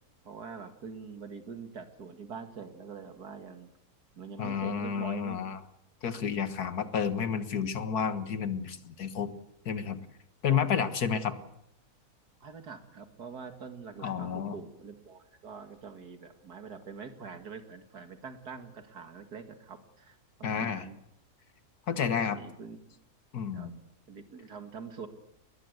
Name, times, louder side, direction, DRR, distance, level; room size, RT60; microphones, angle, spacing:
voice 1, 0.2-3.7 4.2-5.4 10.5-10.8 11.3-11.4 12.4-21.0 22.2-22.9 23.5-23.7 24.1-25.1, right 5 dB, 85° right, 7 dB, 2.6 m, -45 dB
voice 2, 4.4-5.6 6.0-9.3 9.7-10.0 10.4-11.3 14.0-14.5 20.4-20.9 21.9-22.4 23.3-23.8, left 7 dB, 80° left, 11 dB, 2.0 m, -30 dB
21.0 x 20.5 x 8.1 m, 0.77 s
omnidirectional pair, 1.6 m